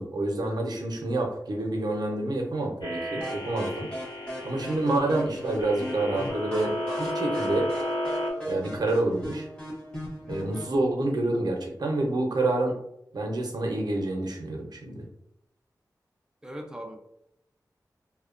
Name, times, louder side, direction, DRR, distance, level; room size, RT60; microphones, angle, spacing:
voice 1, 0.0-3.9 4.4-6.7 7.0-7.7 8.4-9.4 10.3-12.8 13.1-15.1, right 2 dB, 70° right, 2 dB, 0.6 m, -28 dB
sound 1, 2.8-8.3, left 1 dB, 80° left, 0.6 m, -33 dB
sound 2, 3.2-10.8, equal, 15° left, 0.8 m, -38 dB
voice 2, 10.1-10.4 16.4-17.0, right 1 dB, 10° right, 2 dB, 0.4 m, -42 dB
2.7 x 2.1 x 2.4 m, 0.77 s
wide cardioid pair, 110°, 7 cm